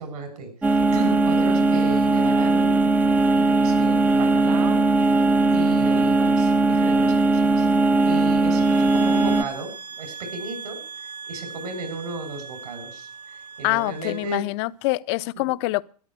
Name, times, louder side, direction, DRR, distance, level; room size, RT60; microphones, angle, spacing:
voice 1, 0.0-2.9 3.5-5.2 5.5-7.7 8.0-9.7 10.0-13.1 13.6-14.5 15.3-15.5, right 3 dB, 65° right, 7.2 m, -35 dB
sound 1, 0.6-9.4, right 2 dB, 10° right, 0.6 m, -19 dB
sound 2, 8.6-14.4, right 6 dB, 80° right, 1.3 m, -39 dB
voice 2, 13.6-15.8, left 21 dB, 40° left, 0.6 m, -25 dB
13.5 x 11.0 x 8.0 m
hypercardioid pair, 120°, 21 cm